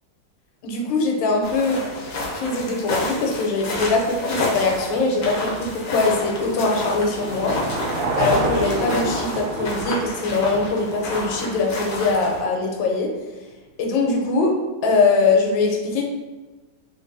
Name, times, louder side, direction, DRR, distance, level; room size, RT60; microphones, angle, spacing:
voice 1, 0.6-1.8 2.3-7.6 8.2-13.1 13.8-14.6 14.8-16.0, left 3 dB, 80° left, 1 dB, 1.3 m, -22 dB
sound 1, 1.4-12.4, left 2 dB, 65° left, 0.9 m, -29 dB
Car passing by / Engine, 5.6-12.0, right 2 dB, 70° right, 1.0 m, -29 dB
3.2 x 2.6 x 2.6 m, 1.2 s
omnidirectional pair, 2.1 m